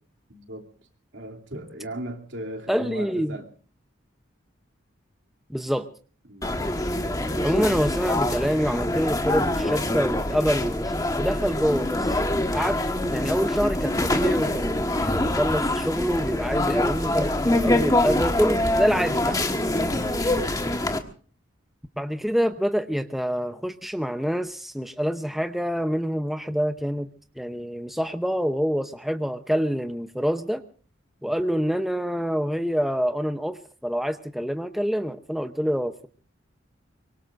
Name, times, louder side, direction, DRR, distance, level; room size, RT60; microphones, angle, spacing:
voice 1, 0.3-0.6 1.1-3.5 6.3-6.6 31.3-31.4, right 1 dB, 70° right, 4 dB, 3.0 m, -37 dB
voice 2, 2.7-3.4 5.5-5.9 7.4-12.2 12.5-12.8 13.1-19.4 22.0-27.1 27.4-30.6 31.2-36.1, equal, ahead, 8 dB, 0.7 m, -26 dB
sound 1, 6.4-21.0, left 1 dB, 20° left, 1.4 m, -25 dB
24.5 x 23.0 x 2.5 m, 0.41 s
head